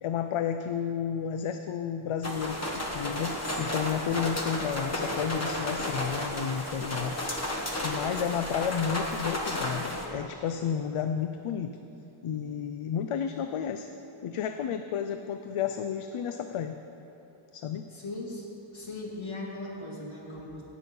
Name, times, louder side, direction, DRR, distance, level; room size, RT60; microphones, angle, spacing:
voice 1, 0.0-7.2 7.8-11.8 12.2-13.9 14.2-16.8 17.5-17.8, left 8 dB, 85° left, 8 dB, 0.6 m, -32 dB
sound 1, 2.2-10.0, left 1 dB, 30° left, 1.3 m, -32 dB
voice 2, 17.9-18.5 18.7-20.6, left 2 dB, 70° left, -3 dB, 2.4 m, -38 dB
17.0 x 6.3 x 5.4 m, 3.0 s
wide cardioid pair, 135°, 50 cm